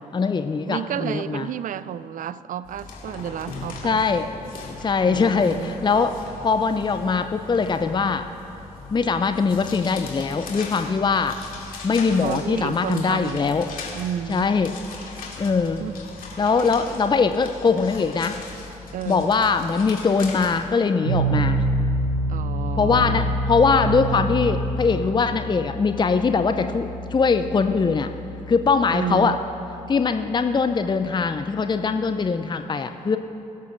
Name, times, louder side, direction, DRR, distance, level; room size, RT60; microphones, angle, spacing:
voice 1, 0.1-1.5 3.8-4.3 4.8-8.3 8.9-11.3 11.8-13.7 14.3-14.7 15.4-15.8 16.4-18.4 19.1-21.6 22.8-28.1 28.5-29.4 29.9-33.2, left 5 dB, 25° left, 8 dB, 0.6 m, -22 dB
voice 2, 0.7-4.1 5.1-5.8 12.2-13.4 13.9-14.5 15.8-16.1 18.9-19.4 22.3-23.3 28.9-29.4, right 9 dB, 50° right, 16 dB, 0.5 m, -31 dB
sound 1, 2.6-20.8, left 3 dB, 55° left, 2.5 m, -39 dB
sound 2, 21.0-32.2, right 1 dB, 85° right, 1.1 m, -28 dB
22.0 x 13.0 x 2.6 m, 2.8 s
figure-of-eight pair, 40°, 17 cm